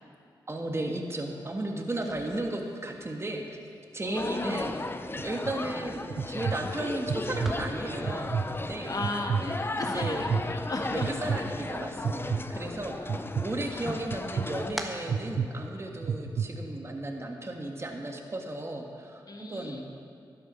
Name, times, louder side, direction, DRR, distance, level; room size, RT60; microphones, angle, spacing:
voice 1, 0.5-3.6 3.9-4.8 5.2-9.0 9.9-10.3 10.9-19.8, right 1 dB, 30° right, 2 dB, 1.6 m, -35 dB
sound 1, 1.9-11.8 12.1-13.0 13.3-16.0, equal, ahead, 1.4 m, -46 dB
voice 2, 4.0-4.7 8.8-11.2 19.3-19.8, left 2 dB, 45° left, 3 dB, 1.4 m, -35 dB
sound 2, 4.1-14.7, left 2 dB, 25° left, 0.6 m, -36 dB
sound 3, 5.2-5.5 6.1-6.6 7.1-7.5 8.0-8.5 9.0-9.4 10.0-10.4 11.0-11.4 12.0-12.4 13.1-13.4 14.1-14.4 15.1-15.5 16.0-16.5, right 6 dB, 70° right, 0.7 m, -28 dB
12.5 x 9.9 x 5.5 m, 2.3 s
cardioid pair, 55°, 9 cm